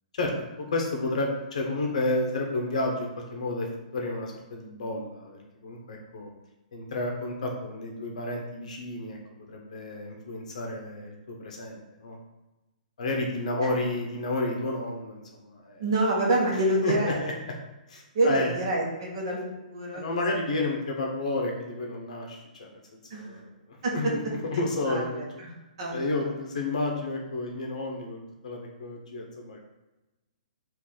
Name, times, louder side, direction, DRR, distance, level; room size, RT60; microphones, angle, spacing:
voice 1, 0.6-6.3 6.7-9.2 9.5-12.2 13.0-15.8 16.8-17.1 17.9-18.5 19.9-22.8 23.1-24.2 24.5-25.2 25.9-29.6, left 2 dB, 50° left, 0 dB, 0.9 m, -31 dB
voice 2, 15.8-17.3 18.1-19.4 19.7-20.0 23.1-23.4 23.8-23.9 24.9-25.5 25.8-26.2, right 1 dB, 40° right, -2 dB, 1.0 m, -27 dB
4.5 x 2.6 x 3.8 m, 1.0 s
hypercardioid pair, 175°, 5 cm